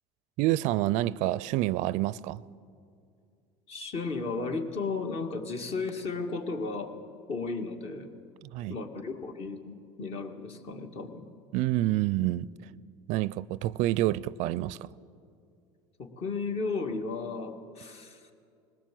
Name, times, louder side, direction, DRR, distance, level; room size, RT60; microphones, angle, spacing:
voice 1, 0.4-2.4 8.4-8.7 11.5-12.5 13.1-14.9, right 16 dB, 60° right, 0.4 m, -28 dB
voice 2, 3.7-6.9 7.3-8.1 8.7-11.2 16.0-18.2, left 4 dB, 45° left, 2.1 m, -34 dB
20.0 x 17.5 x 7.7 m
supercardioid pair, 95°, 14 cm